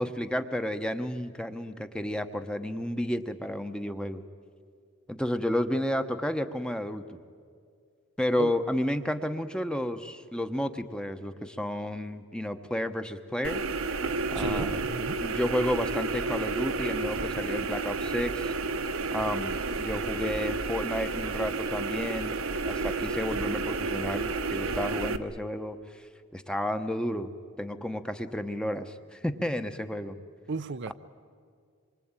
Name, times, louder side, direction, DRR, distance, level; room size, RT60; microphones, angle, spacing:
voice 1, 0.0-4.2 5.1-7.2 8.2-13.6 14.3-14.8 15.2-18.5 19.1-22.4 22.6-25.8 26.3-27.3 27.6-30.2, left 1 dB, 5° left, 1.0 m, -31 dB
sound 1, 13.4-25.2, right 3 dB, 70° right, 1.1 m, -31 dB
voice 2, 14.3-15.2 30.5-30.9, right 3 dB, 55° right, 0.6 m, -34 dB
26.0 x 23.5 x 8.9 m
head